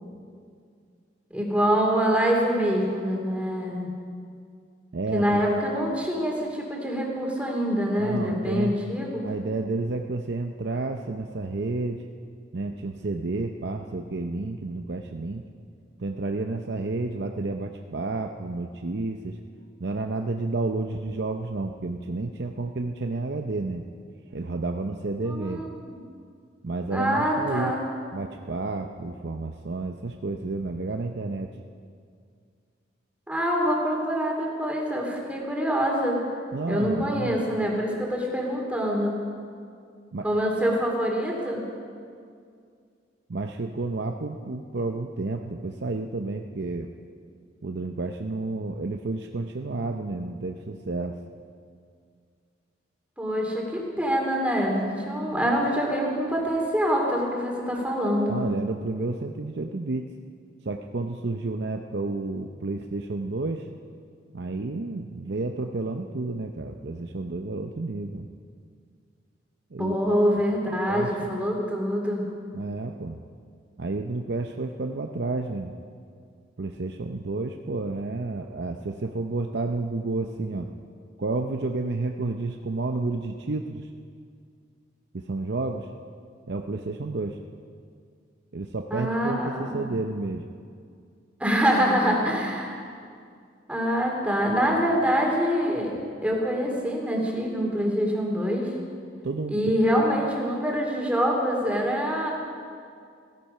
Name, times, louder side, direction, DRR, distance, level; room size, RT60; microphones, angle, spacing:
voice 1, 1.3-3.9 5.1-9.3 25.2-25.9 26.9-27.9 33.3-36.2 36.7-39.2 40.2-41.6 53.2-58.4 69.8-72.2 88.9-89.9 91.4-92.8 93.7-95.9 96.2-98.7 99.5-102.3, equal, 5° right, -1 dB, 2.6 m, -25 dB
voice 2, 4.9-5.5 8.0-8.8 9.2-12.0 12.5-15.4 16.0-19.4 19.8-23.8 24.3-25.6 26.6-27.7 28.1-31.6 36.5-37.5 40.1-40.3 43.3-46.9 47.6-51.2 58.3-60.1 60.6-63.7 64.3-68.3 69.7-70.0 70.9-71.4 72.5-73.2 73.8-75.7 76.6-80.7 81.2-83.9 85.1-85.9 86.5-87.4 88.5-90.4 99.2-99.6, right 3 dB, 60° right, 4 dB, 0.6 m, -31 dB
16.0 x 15.0 x 5.6 m, 2.2 s
head